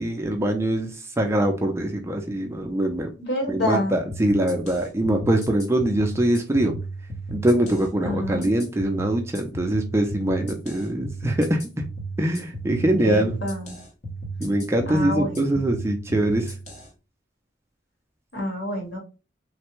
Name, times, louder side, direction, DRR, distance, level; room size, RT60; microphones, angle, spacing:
voice 1, 0.0-3.1 3.5-6.7 7.3-11.6 12.2-13.4 14.4-16.5, right 1 dB, 15° right, 3 dB, 0.4 m, -23 dB
voice 2, 3.2-4.0 8.0-8.5 13.0-13.7 14.9-15.6 18.3-19.0, left 1 dB, 65° left, 0 dB, 1.4 m, -27 dB
sound 1, 4.1-16.9, right 3 dB, 40° left, 0.8 m, -35 dB
3.2 x 2.1 x 3.0 m, 0.32 s
head